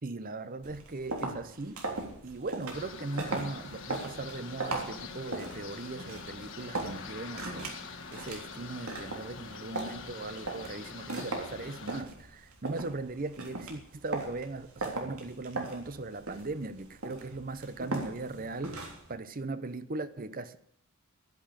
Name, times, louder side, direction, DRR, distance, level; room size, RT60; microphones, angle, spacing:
voice 1, 0.0-1.8 2.2-20.6, right 3 dB, 40° right, 0.8 m, -39 dB
sound 1, 0.6-19.1, right 2 dB, 85° right, 3.4 m, -39 dB
sound 2, 2.7-12.0, left 5 dB, 60° left, 1.6 m, -45 dB
12.0 x 10.5 x 8.9 m
head